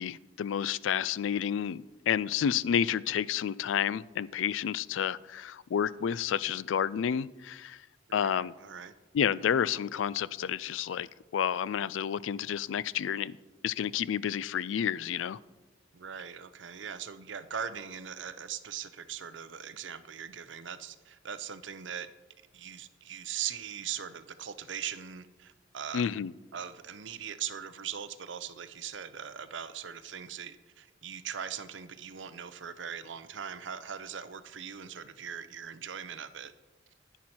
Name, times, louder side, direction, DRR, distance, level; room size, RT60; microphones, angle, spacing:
voice 1, 0.0-7.8 8.1-8.5 9.1-11.1 11.3-13.4 13.6-15.4 25.9-26.3, left 8 dB, 85° left, 0.3 m, -30 dB
voice 2, 8.1-8.9 15.9-22.1 22.5-26.1 26.5-36.5, right 8 dB, 75° right, 0.6 m, -40 dB
10.5 x 10.0 x 4.3 m
head